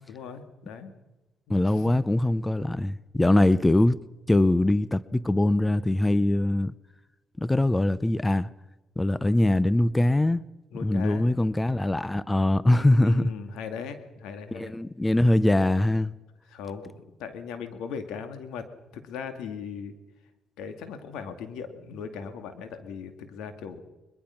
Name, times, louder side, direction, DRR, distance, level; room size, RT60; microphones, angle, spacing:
voice 1, 0.1-0.9 1.5-1.9 10.7-11.3 12.7-14.8 16.5-19.9 20.6-23.8, left 6 dB, 90° left, 2.3 m, -38 dB
voice 2, 1.5-4.0 4.3-6.7 7.4-8.5 9.0-10.4 10.8-13.3 14.5-16.1, left 1 dB, 15° left, 0.7 m, -22 dB
22.5 x 21.5 x 5.9 m
cardioid pair, 90°, 0 cm